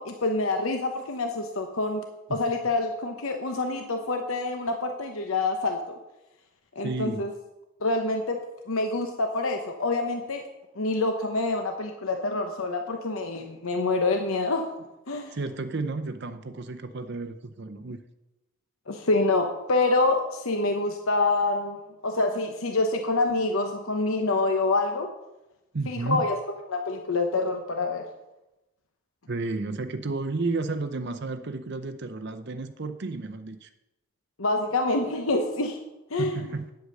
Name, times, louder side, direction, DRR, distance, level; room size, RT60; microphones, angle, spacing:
voice 1, 0.0-2.0 2.3-5.8 6.8-7.3 7.8-8.4 8.7-10.4 10.8-14.7 15.1-15.3 18.9-25.1 25.9-26.4 26.7-28.1 34.4-35.8 36.1-36.4, left 2 dB, 75° left, 5 dB, 0.9 m, -26 dB
voice 2, 6.8-7.3 15.3-18.0 25.7-26.3 29.3-33.7 36.2-36.7, right 3 dB, 50° right, 9 dB, 0.6 m, -32 dB
9.4 x 8.1 x 6.5 m, 0.96 s
head